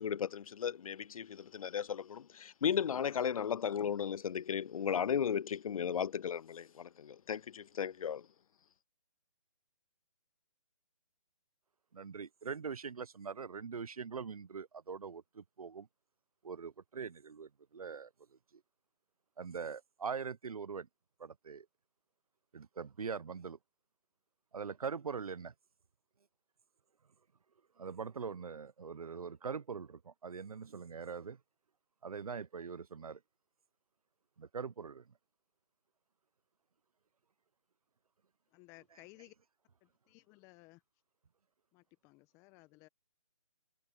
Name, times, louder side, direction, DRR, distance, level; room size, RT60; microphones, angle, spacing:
voice 1, 0.0-8.3, left 8 dB, 70° left, 0.4 m, -35 dB
voice 2, 11.9-15.9 16.4-18.1 19.4-20.9 21.2-21.7 22.5-23.6 24.5-25.5 27.8-31.4 32.0-33.2 34.4-35.0, right 6 dB, 75° right, 0.8 m, -42 dB
voice 3, 38.5-39.3 39.8-40.8 41.7-42.9, left 23 dB, 15° left, 1.0 m, -59 dB
figure-of-eight pair, 150°, 19 cm